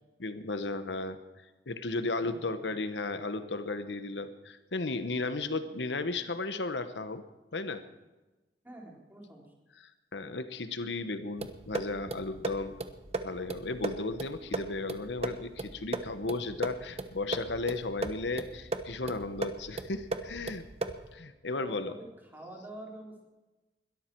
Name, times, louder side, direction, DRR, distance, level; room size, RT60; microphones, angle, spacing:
voice 1, 0.2-1.2 1.7-7.2 7.5-7.8 10.1-12.7 13.2-20.6 21.1-22.0, left 3 dB, 90° left, 11 dB, 1.1 m, -35 dB
voice 2, 2.2-2.6 8.6-9.5 21.5-22.1 22.3-23.3, right 1 dB, 10° right, -1 dB, 3.7 m, -47 dB
sound 1, 11.4-21.1, right 3 dB, 35° right, 1.1 m, -37 dB
21.5 x 13.0 x 4.6 m, 1.1 s
head